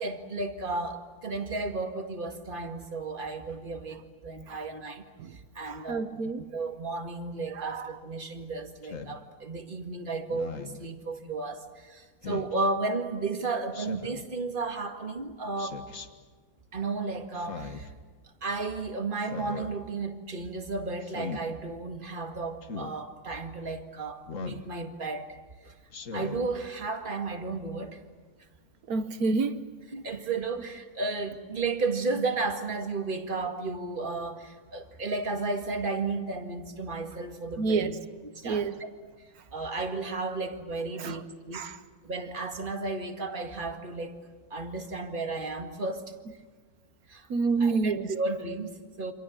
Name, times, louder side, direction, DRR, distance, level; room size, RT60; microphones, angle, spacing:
voice 1, 0.0-5.0 5.6-6.1 6.4-15.8 16.7-17.9 18.4-25.4 25.6-25.7 26.1-28.0 29.9-37.9 38.2-38.9 39.5-41.7 42.0-44.2 44.5-46.1 47.1-47.3 47.6-49.1, right 3 dB, 35° right, 6 dB, 2.1 m, -33 dB
voice 2, 5.7-6.4 7.5-7.9 28.9-29.6 37.6-37.9 38.4-38.7 41.0-41.2 41.5-41.8 47.3-48.1, right 4 dB, 70° right, 11 dB, 1.7 m, -28 dB
Speech synthesizer, 8.8-9.2 10.3-10.8 12.2-12.5 13.7-14.2 15.6-16.1 17.3-17.9 19.2-19.7 21.0-21.4 22.6-22.9 24.3-24.7 25.9-26.4, left 5 dB, 55° left, 1.9 m, -39 dB
28.5 x 26.5 x 7.5 m, 1.4 s
omnidirectional pair, 1.6 m